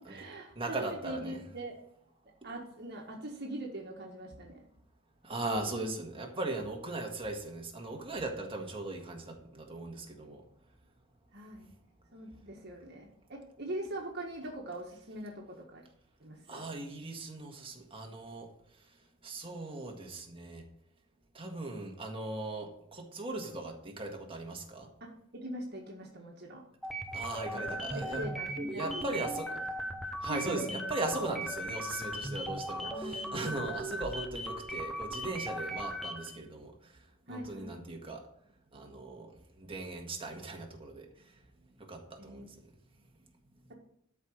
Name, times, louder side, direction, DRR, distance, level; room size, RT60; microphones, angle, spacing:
voice 1, 0.0-1.7 2.4-4.6 5.8-5.9 11.3-11.7 12.1-15.8 16.2-16.6 25.0-26.6 27.5-27.7 27.9-29.0 29.5-29.6 30.3-30.6 32.8-33.6 37.3-37.8 42.2-42.5, right 1 dB, 55° right, 0 dB, 1.6 m, -42 dB
voice 2, 0.6-1.4 5.2-10.4 16.5-18.5 19.2-20.7 21.3-24.9 27.1-28.3 28.7-29.6 30.2-36.9 37.3-38.2 38.7-41.3 41.8-42.6, right 2 dB, 25° right, 2 dB, 1.7 m, -39 dB
sound 1, 26.8-36.4, equal, ahead, 0.9 m, -38 dB
12.5 x 4.8 x 6.5 m, 0.71 s
head